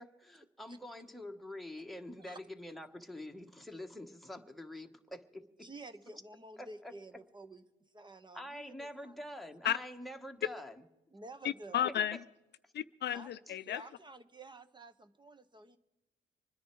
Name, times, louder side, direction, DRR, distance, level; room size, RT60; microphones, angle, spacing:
voice 1, 0.0-5.7 6.6-6.9 8.3-10.7, left 1 dB, ahead, 1.3 m, -46 dB
voice 2, 5.6-7.6 7.9-9.1 11.1-11.8 13.1-13.3 13.7-15.8, right 2 dB, 25° right, 0.9 m, -51 dB
voice 3, 11.4-12.2 12.7-13.9, left 10 dB, 60° left, 0.5 m, -33 dB
25.5 x 10.0 x 4.6 m
cardioid pair, 90°, 20 cm